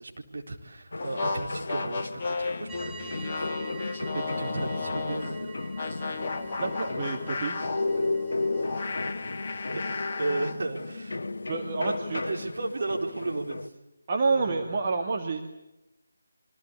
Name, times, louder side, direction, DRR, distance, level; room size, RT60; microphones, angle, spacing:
voice 1, 0.0-2.1 2.4-3.5 4.1-5.5 9.3-9.8 10.2-11.2 11.8-13.7 14.3-14.7, right 2 dB, 50° right, 2 dB, 4.2 m, -34 dB
sound 1, 0.9-13.7, left 3 dB, 55° left, 1.1 m, -37 dB
sound 2, 1.0-5.3 5.8-10.6, left 3 dB, 30° left, 2.0 m, -32 dB
sound 3, 2.7-10.3, right 6 dB, 5° right, 1.0 m, -49 dB
voice 2, 6.6-7.6 11.5-12.2 14.1-15.4, right 4 dB, 30° right, 1 dB, 2.0 m, -28 dB
28.0 x 24.5 x 8.5 m, 0.95 s
figure-of-eight pair, 155°, 0 cm